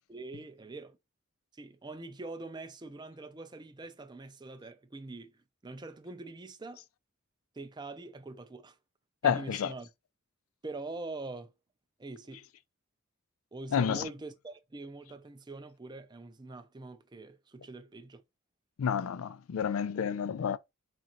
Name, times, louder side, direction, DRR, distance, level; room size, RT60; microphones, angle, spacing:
voice 1, 0.1-1.0 1.5-6.8 7.5-8.8 9.2-9.9 10.6-11.5 12.0-12.4 13.5-18.2, right 2 dB, 20° right, 0.5 m, -44 dB
voice 2, 9.2-9.7 13.7-14.1 18.8-20.6, left 7 dB, 85° left, 0.4 m, -30 dB
5.1 x 2.5 x 2.9 m
head